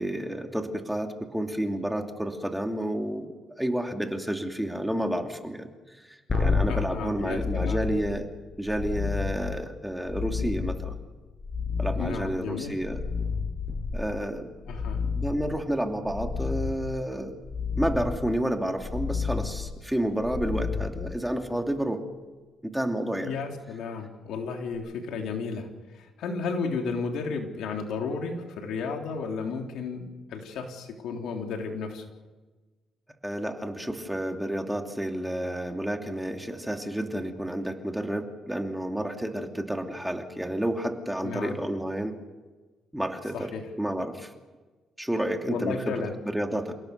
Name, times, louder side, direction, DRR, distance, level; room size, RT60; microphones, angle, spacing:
voice 1, 0.0-3.3 3.6-8.3 8.6-11.0 11.8-13.0 13.9-14.5 15.1-17.3 17.7-22.0 22.7-23.3 33.2-42.2 42.9-43.5 43.8-44.3 45.0-46.7, right 1 dB, 5° right, 4 dB, 2.6 m, -30 dB
sound 1, 6.3-21.6 24.7-24.8, left 5 dB, 35° left, 7.9 m, -31 dB
voice 2, 6.7-7.8 12.0-12.7 14.7-15.1 23.2-25.7 25.9-32.1 41.2-41.6 43.3-43.6 45.5-46.1, left 4 dB, 80° left, 3 dB, 3.5 m, -33 dB
28.5 x 17.5 x 6.8 m, 1.3 s
cardioid pair, 90°, 0 cm